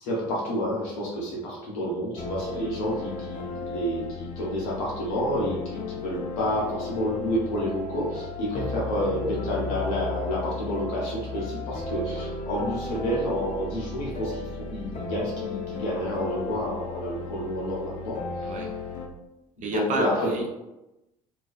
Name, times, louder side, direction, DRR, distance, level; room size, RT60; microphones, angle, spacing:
voice 1, 0.0-18.2 19.6-20.3, equal, 75° left, -4 dB, 0.9 m, -29 dB
sound 1, 2.2-19.1, left 3 dB, 45° left, 0.5 m, -35 dB
voice 2, 19.6-20.5, right 3 dB, 45° right, 0 dB, 0.5 m, -30 dB
2.4 x 2.2 x 2.4 m, 0.96 s
hypercardioid pair, 60°, 18 cm